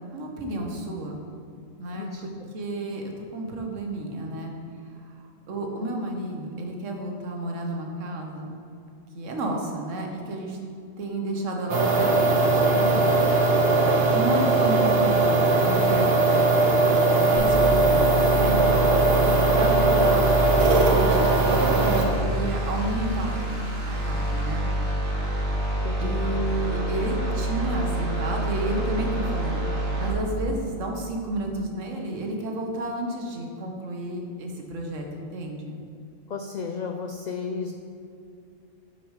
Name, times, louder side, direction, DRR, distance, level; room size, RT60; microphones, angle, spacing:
voice 1, 0.1-1.2 1.8-4.5 4.9-5.1 5.5-8.5 9.1-10.6 11.0-12.4 13.3-13.5 13.8-15.3 15.6-16.5 17.1-18.7 19.2-20.3 20.8-23.4 23.9-24.6 26.0-29.7 30.0-35.7, right 1 dB, 75° right, 2 dB, 1.3 m, -31 dB
voice 2, 1.9-2.3 12.7-13.2 25.8-26.3 36.3-37.7, left 5 dB, 85° left, 3 dB, 0.4 m, -33 dB
sound 1, 11.7-22.0, right 3 dB, 55° right, 1.1 m, -20 dB
sound 2, 17.4-30.1, right 1 dB, 90° right, 2.0 m, -27 dB
6.2 x 5.8 x 4.9 m, 2.5 s
omnidirectional pair, 1.3 m